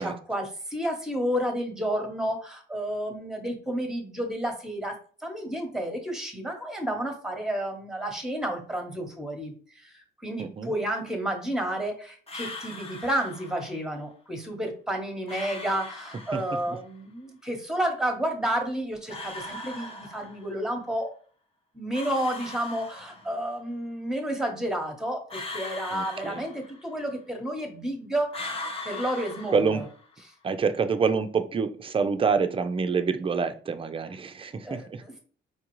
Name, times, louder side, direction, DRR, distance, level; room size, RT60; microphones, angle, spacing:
voice 1, 0.0-21.1 21.7-28.4 28.8-29.8 34.6-35.2, right 1 dB, 5° right, 3 dB, 1.0 m, -31 dB
voice 2, 10.4-10.7 16.3-16.4 16.7-16.8 25.9-26.4 29.5-29.8 30.4-35.0, right 5 dB, 25° right, 9 dB, 0.5 m, -27 dB
sound 1, 12.3-13.8 15.3-16.8 19.1-20.6 21.9-23.5 25.3-27.0 28.3-30.2, left 2 dB, 30° left, 0.8 m, -39 dB
4.6 x 2.3 x 3.0 m, 0.42 s
cardioid pair, 90°, 20 cm